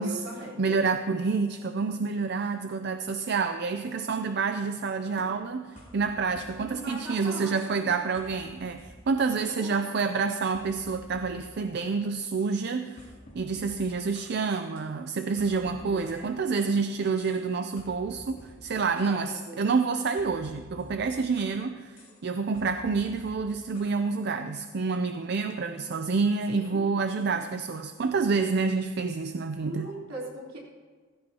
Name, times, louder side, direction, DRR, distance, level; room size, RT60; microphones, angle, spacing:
voice 1, 0.0-0.8 6.6-7.5 7.8-8.0 9.3-9.9 15.8-16.3 19.0-19.7 26.5-26.9 27.3-27.4 29.6-30.6, right 1 dB, 70° right, -4 dB, 3.9 m, -40 dB
voice 2, 0.6-13.1 13.3-22.0 22.2-29.9, right 4 dB, 50° right, 8 dB, 0.5 m, -28 dB
sound 1, 5.2-7.2 7.6-7.9 8.1-9.6 10.0-12.0 12.4-12.6 13.0-14.4 14.8-16.8 17.2-17.5 17.8-19.2 19.6-21.6 22.0-22.2 22.5-24.0, left 1 dB, 40° left, 2.9 m, -50 dB
16.5 x 15.5 x 2.9 m, 1.5 s
head